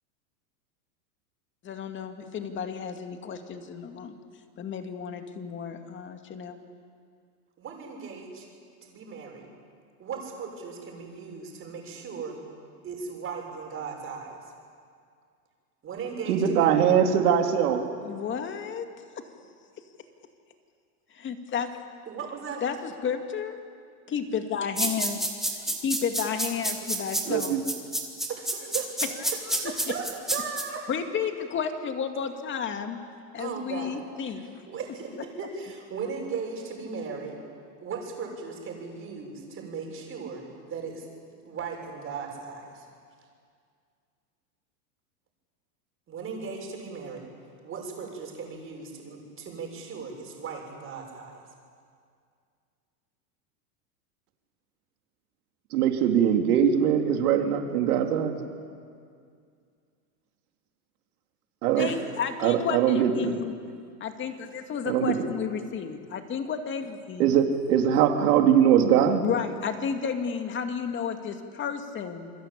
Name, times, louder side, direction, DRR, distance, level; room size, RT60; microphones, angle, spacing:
voice 1, 1.6-4.2 4.6-6.6 18.0-18.9 19.2-19.3 21.1-21.7 22.6-23.6 24.1-27.6 29.2-29.6 30.9-33.0 33.3-34.5 61.8-63.5 64.0-67.3 69.2-72.3, left 7 dB, 25° left, 6 dB, 2.3 m, -32 dB
voice 2, 7.6-8.5 8.8-9.5 10.0-12.4 12.8-14.4 15.8-17.1 22.1-22.6 26.8-26.9 28.3-28.9 29.6-30.0 30.3-30.8 33.4-35.1 35.4-37.3 37.8-41.1 41.4-42.9 46.1-47.2 47.6-51.4 61.8-62.0, right 5 dB, 25° right, 1 dB, 6.7 m, -37 dB
voice 3, 16.3-17.8 27.3-27.6 55.7-58.4 61.6-61.9 62.4-63.4 64.9-65.1 67.2-69.3, right 8 dB, 70° right, 3 dB, 3.6 m, -22 dB
sound 1, 24.8-30.6, right 1 dB, ahead, 3.0 m, -28 dB
28.5 x 22.5 x 8.8 m, 2.2 s
supercardioid pair, 140°, 46 cm